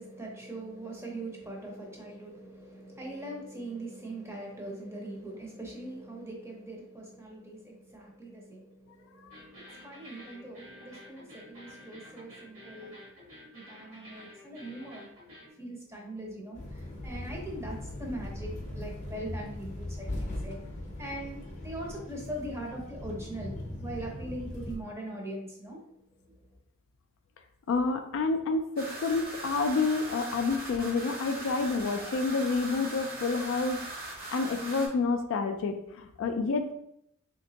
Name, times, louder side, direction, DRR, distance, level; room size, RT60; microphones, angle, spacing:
voice 1, 0.0-13.0 13.5-15.1 15.6-20.6 21.0-25.8 26.2-26.3, right 1 dB, 10° right, -1 dB, 0.7 m, -41 dB
sound 1, 9.3-15.5, left 1 dB, 65° right, 1.5 m, -50 dB
sound 2, 16.5-24.8, left 1 dB, 35° left, 0.7 m, -39 dB
voice 2, 27.7-36.7, left 4 dB, 60° left, 6 dB, 0.3 m, -29 dB
sound 3, 28.8-34.9, right 2 dB, 45° right, 0.9 m, -40 dB
3.3 x 2.9 x 2.8 m, 0.75 s
head